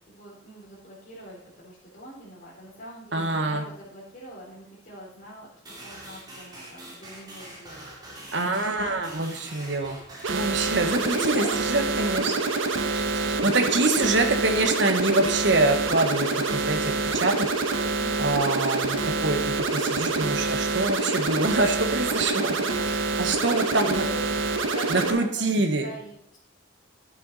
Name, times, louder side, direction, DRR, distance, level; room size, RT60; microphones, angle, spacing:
voice 1, 0.0-8.8 11.1-13.6 22.1-26.4, equal, 45° left, -9 dB, 4.1 m, -42 dB
voice 2, 3.1-3.6 8.3-12.3 12.9-17.5 18.2-22.5 22.8-24.0 24.9-25.9, right 2 dB, 65° right, 5 dB, 1.3 m, -25 dB
sound 1, 5.6-11.1, right 1 dB, 20° right, 2.9 m, -44 dB
sound 2, 10.2-25.1, right 3 dB, 85° right, 1.2 m, -26 dB
11.5 x 8.9 x 4.1 m, 0.66 s
head